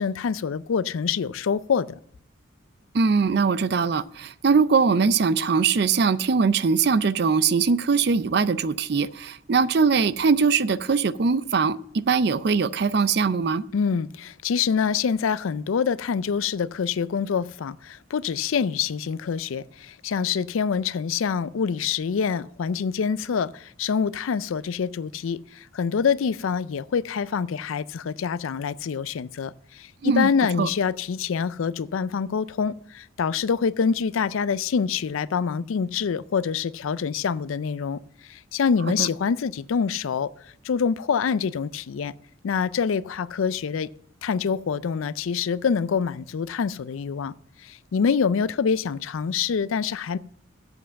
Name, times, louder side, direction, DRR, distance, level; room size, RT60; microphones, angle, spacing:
voice 1, 0.0-2.0 13.7-42.1 42.4-43.9 44.2-47.3 47.6-50.2, left 6 dB, 80° left, 0.4 m, -26 dB
voice 2, 2.9-13.7 30.0-30.3 30.6-30.7 39.0-39.1, right 5 dB, 50° right, 0.4 m, -21 dB
7.9 x 7.5 x 6.8 m
head